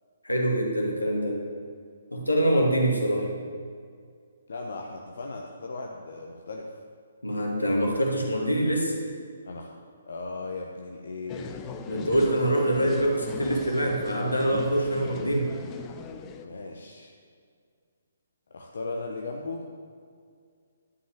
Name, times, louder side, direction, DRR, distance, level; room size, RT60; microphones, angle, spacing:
voice 1, 0.2-1.4 2.1-3.3 7.2-8.9 11.9-15.5, right 1 dB, 90° left, 0 dB, 2.3 m, -25 dB
voice 2, 4.5-6.7 9.4-9.7 10.1-11.5 16.4-17.1 18.5-19.6, left 3 dB, 60° left, 0 dB, 1.0 m, -37 dB
sound 1, 11.3-16.4, left 5 dB, 20° left, 0.7 m, -39 dB
11.0 x 5.6 x 8.1 m, 2.1 s
figure-of-eight pair, 135°, 0 cm